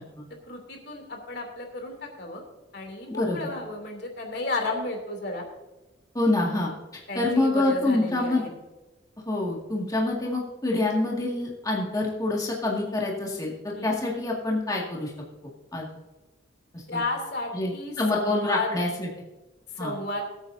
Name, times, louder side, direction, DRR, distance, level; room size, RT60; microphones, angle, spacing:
voice 1, 0.5-2.4 2.7-5.4 7.1-8.5 13.7-13.9 16.9-18.7 19.7-20.2, left 2 dB, 60° left, 2 dB, 2.9 m, -33 dB
voice 2, 3.1-3.5 6.1-6.7 7.2-8.4 9.3-15.1 15.7-15.9 16.7-17.0 17.5-19.1 19.8-19.9, left 2 dB, 20° left, -3 dB, 2.0 m, -26 dB
20.5 x 8.7 x 2.7 m, 1.1 s
head